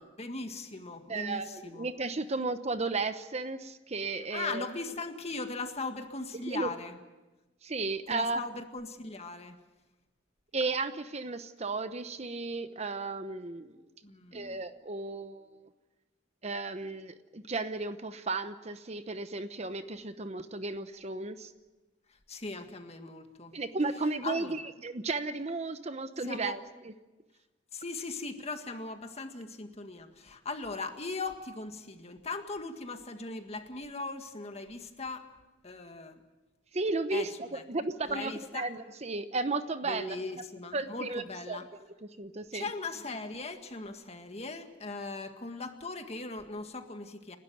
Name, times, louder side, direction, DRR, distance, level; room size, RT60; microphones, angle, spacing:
voice 1, 0.0-1.9 4.3-7.0 8.1-9.6 14.0-14.6 22.3-23.6 24.2-24.7 26.2-26.6 27.7-35.3 35.6-36.2 37.1-37.3 37.5-38.6 39.9-41.7 42.5-47.4, left 3 dB, 35° left, 6 dB, 1.8 m, -39 dB
voice 2, 1.1-4.7 6.5-6.7 7.6-8.5 10.5-13.8 14.3-15.7 16.4-21.5 23.5-26.6 36.7-40.2 40.7-41.6 42.2-42.7, right 3 dB, 35° right, 10 dB, 0.9 m, -34 dB
30.0 x 12.5 x 9.3 m, 1.1 s
head